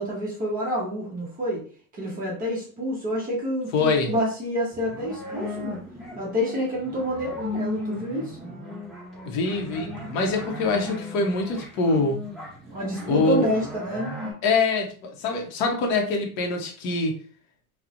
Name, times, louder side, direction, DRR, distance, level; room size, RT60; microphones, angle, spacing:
voice 1, 0.0-1.6 1.9-5.8 6.2-8.4 12.7-14.2, equal, 20° right, -4 dB, 0.7 m, -28 dB
voice 2, 3.7-4.1 9.3-12.2 13.1-13.5 14.4-17.1, left 3 dB, 40° left, 2 dB, 0.6 m, -24 dB
sound 1, 4.7-14.3, left 2 dB, ahead, 1.0 m, -36 dB
2.3 x 2.0 x 2.7 m, 0.43 s
supercardioid pair, 140°, 44 cm